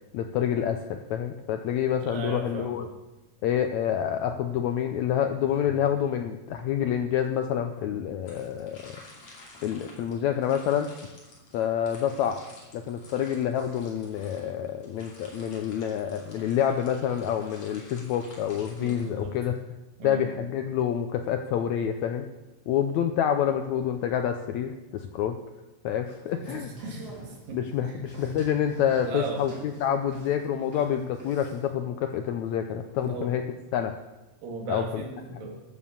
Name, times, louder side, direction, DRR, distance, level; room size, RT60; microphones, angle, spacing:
voice 1, 0.1-2.9 3.4-9.0 9.6-10.9 11.5-12.4 12.7-19.5 20.0-22.3 22.7-25.4 25.8-26.7 27.5-33.4 33.7-34.0 34.7-34.8, left 9 dB, 80° left, 6 dB, 1.6 m, -27 dB
voice 2, 2.0-2.8 18.8-19.4 20.0-20.5 26.4-28.1 29.0-29.5 33.0-33.3 34.4-35.6, right 2 dB, 80° right, 1 dB, 3.7 m, -37 dB
sound 1, 8.3-19.6, left 2 dB, 50° left, 3.9 m, -52 dB
sound 2, 26.3-31.7, right 2 dB, 30° right, 3.2 m, -46 dB
12.5 x 8.3 x 7.0 m, 1.0 s
omnidirectional pair, 3.9 m